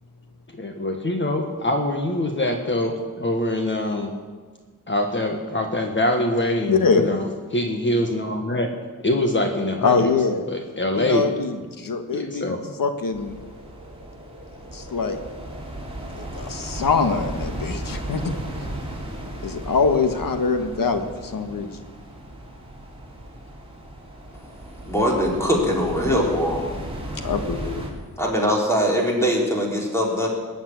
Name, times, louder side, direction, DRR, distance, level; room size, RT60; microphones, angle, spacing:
voice 1, 0.5-4.1 4.9-7.2 7.5-8.7 9.0-10.1 10.5-11.2 12.1-12.6, left 1 dB, 35° left, 3 dB, 1.5 m, -24 dB
voice 2, 6.7-7.1 9.8-10.5 10.9-13.3 14.7-15.2 16.1-18.3 19.4-21.7 27.2-27.8, left 5 dB, 80° left, 7 dB, 1.6 m, -23 dB
sound 1, 13.1-27.9, right 1 dB, 15° right, 3.6 m, -35 dB
voice 3, 24.8-26.6 28.2-30.3, equal, 10° left, -2 dB, 3.7 m, -21 dB
20.0 x 7.2 x 9.7 m, 1.4 s
wide cardioid pair, 130°, 33 cm